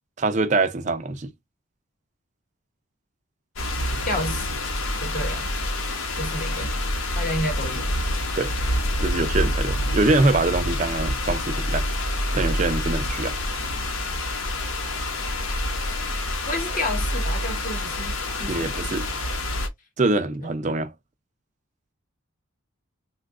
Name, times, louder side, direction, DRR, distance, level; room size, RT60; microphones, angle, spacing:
voice 1, 0.2-1.3 8.4-8.5 9.0-11.9 12.3-13.4 18.5-19.1 20.0-20.9, right 2 dB, 35° right, 0.4 m, -24 dB
sound 1, 3.6-19.7, left 1 dB, 80° left, 0.9 m, -27 dB
voice 2, 4.1-4.6 5.0-5.5 6.2-6.8 7.1-7.9 9.1-9.3 16.5-18.9 20.4-20.5, left 1 dB, 40° left, 1.0 m, -31 dB
2.7 x 2.3 x 3.6 m
head